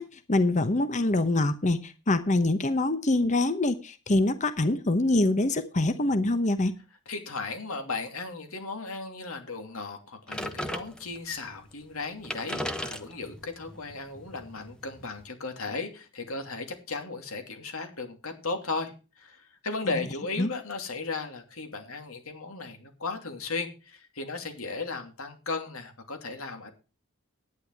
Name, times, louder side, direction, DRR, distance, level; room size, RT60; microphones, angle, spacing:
voice 1, 0.0-6.7 20.4-20.5, left 2 dB, 35° left, 11 dB, 0.9 m, -25 dB
voice 2, 7.1-26.7, left 3 dB, 85° left, 5 dB, 2.8 m, -36 dB
sound 1, 10.3-11.4 11.9-12.0 12.2-15.2, left 1 dB, 5° left, 1.0 m, -37 dB
11.5 x 9.9 x 4.7 m, 0.33 s
head